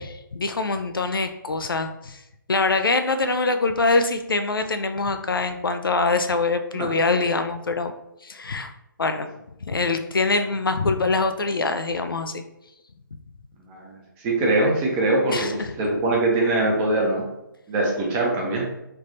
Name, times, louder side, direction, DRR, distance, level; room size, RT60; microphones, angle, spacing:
voice 1, 0.0-2.2 2.5-7.9 8.2-8.7 9.0-9.3 9.6-12.4 15.3-15.7, left 3 dB, 85° left, 8 dB, 0.4 m, -24 dB
voice 2, 13.7-17.3 17.7-18.7, right 2 dB, 20° right, -2 dB, 0.7 m, -23 dB
3.3 x 3.0 x 2.5 m, 0.86 s
figure-of-eight pair, 145°, 11 cm